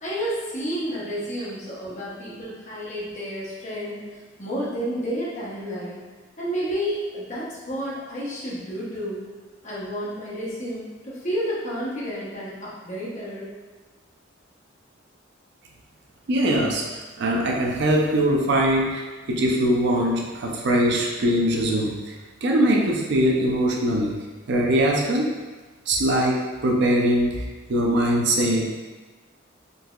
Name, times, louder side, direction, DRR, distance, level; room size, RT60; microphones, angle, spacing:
voice 1, 0.0-4.0 4.4-6.0 6.4-9.2 9.6-13.5, equal, 40° left, -7 dB, 0.9 m, -30 dB
voice 2, 16.3-16.9 17.2-22.0 22.4-24.2 24.5-25.3 25.9-27.4 27.7-28.7, right 1 dB, 60° right, -1 dB, 0.5 m, -21 dB
3.8 x 2.7 x 2.3 m, 1.3 s
head